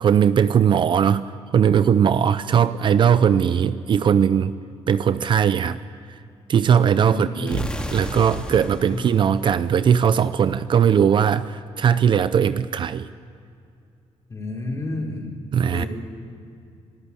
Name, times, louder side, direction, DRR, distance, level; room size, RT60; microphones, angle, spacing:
voice 1, 0.0-4.6 4.9-5.8 6.5-13.1 15.5-15.9, right 8 dB, 45° right, 13 dB, 0.6 m, -19 dB
voice 2, 7.0-7.6 8.9-9.1 14.3-15.3 15.7-15.9, left 2 dB, 30° left, -1 dB, 4.7 m, -30 dB
sound 1, 7.5-10.3, left 1 dB, 10° left, 2.3 m, -33 dB
25.5 x 14.0 x 8.8 m, 2.5 s
cardioid pair, 135°, 11 cm